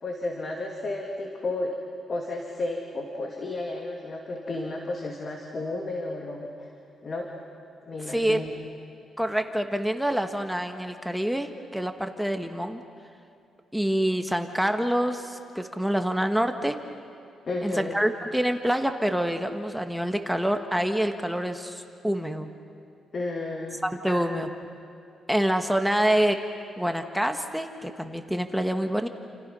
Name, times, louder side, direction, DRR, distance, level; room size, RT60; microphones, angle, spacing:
voice 1, 0.0-1.8 2.1-6.7 7.0-7.3 7.9-8.5 17.5-17.9 23.1-23.8 24.1-24.2, left 2 dB, 45° left, 1 dB, 2.7 m, -32 dB
voice 2, 8.1-8.4 9.2-12.8 13.7-16.8 17.6-22.5 23.9-24.5 25.3-26.4 26.8-29.1, equal, ahead, 6 dB, 1.5 m, -26 dB
29.5 x 29.0 x 5.6 m, 2.6 s
cardioid pair, 100°, 0 cm